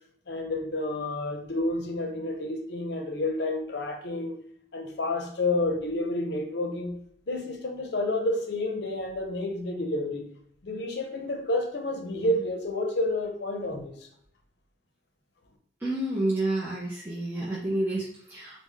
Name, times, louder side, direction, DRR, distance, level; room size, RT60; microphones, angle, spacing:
voice 1, 0.3-4.4 4.7-7.0 7.3-10.3 10.6-14.0, left 2 dB, 65° left, 4 dB, 0.6 m, -30 dB
voice 2, 15.8-18.6, right 1 dB, 10° right, -7 dB, 0.5 m, -29 dB
3.6 x 2.1 x 3.3 m, 0.71 s
head